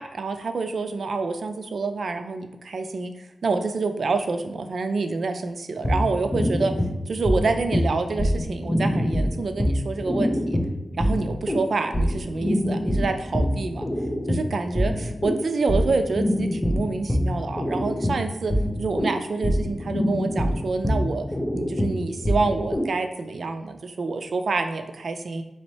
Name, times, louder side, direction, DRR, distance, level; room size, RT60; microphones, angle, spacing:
voice 1, 0.0-3.1 3.4-6.7 7.1-10.6 11.0-13.9 14.3-18.5 18.8-21.2 21.5-25.4, right 3 dB, 75° right, 7 dB, 0.4 m, -27 dB
sound 1, 5.8-22.9, equal, 20° left, 0.9 m, -25 dB
4.2 x 3.0 x 3.2 m, 0.95 s
cardioid pair, 60°, 0 cm